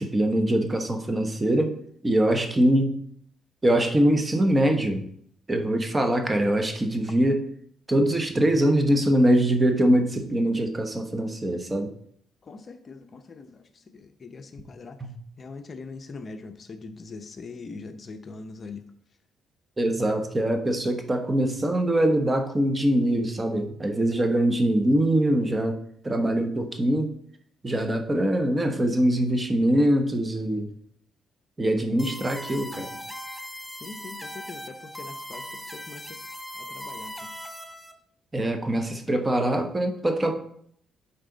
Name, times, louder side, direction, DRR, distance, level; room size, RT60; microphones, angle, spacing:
voice 1, 0.0-1.7 2.0-3.0 3.6-5.1 5.5-7.4 7.9-11.9 15.0-15.1 19.8-25.7 26.0-27.1 27.6-30.7 31.6-32.9 38.3-40.3, right 1 dB, 20° right, 5 dB, 1.1 m, -23 dB
voice 2, 12.4-15.0 15.4-18.8 33.7-36.2 36.6-37.3, left 4 dB, 40° left, 7 dB, 0.7 m, -42 dB
sound 1, 32.0-37.9, equal, 5° right, 0.8 m, -39 dB
10.0 x 4.1 x 4.0 m, 0.66 s
cardioid pair, 90°, 0 cm